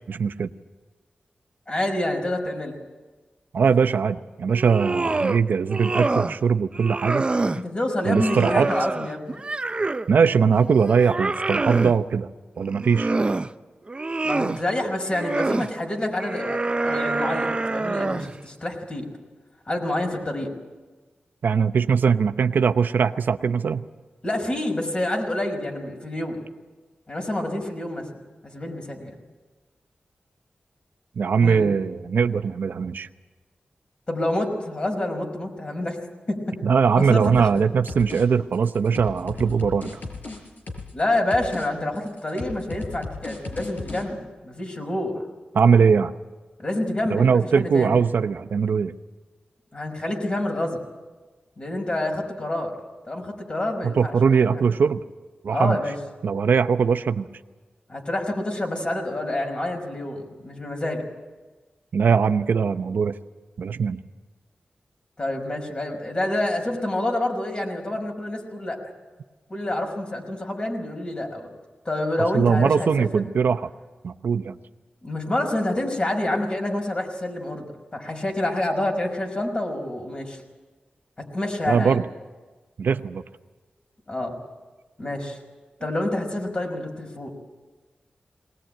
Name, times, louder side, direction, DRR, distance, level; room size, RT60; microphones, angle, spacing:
voice 1, 0.1-0.5 3.5-7.2 8.0-8.7 10.1-12.3 12.6-13.1 21.4-23.8 31.2-33.1 36.6-39.9 45.5-46.1 47.1-48.9 53.8-55.0 55.4-55.8 56.2-57.3 61.9-63.2 63.6-64.0 72.3-73.7 74.0-74.6 81.7-82.0 82.8-83.2, right 6 dB, 80° right, 9 dB, 0.7 m, -21 dB
voice 2, 1.7-2.8 7.5-9.4 14.2-19.1 19.7-20.5 24.2-26.4 27.1-29.1 31.4-31.7 34.1-36.0 36.3-36.6 37.0-37.5 40.9-45.2 46.6-48.0 49.7-50.8 51.6-52.7 53.1-54.1 54.5-54.6 55.5-55.9 57.9-61.1 65.2-68.9 69.5-71.5 71.9-73.2 75.0-77.7 77.9-80.4 81.2-82.0 84.1-84.3 85.0-85.4 85.8-87.3, left 1 dB, 35° left, 2 dB, 5.4 m, -27 dB
sound 1, 4.5-5.4 5.7-6.4 6.7-7.6 8.1-10.1 10.6-12.0 12.6-13.5 13.9-14.6 15.1-15.7 16.2-18.4, right 3 dB, 30° right, 0.7 m, -26 dB
sound 2, 37.2-37.6 37.9-38.2 38.5-41.0 41.3-41.7 42.0-44.0, left 3 dB, 65° left, 5.4 m, -36 dB
20.0 x 19.5 x 9.0 m, 1.3 s
wide cardioid pair, 75°, 3 cm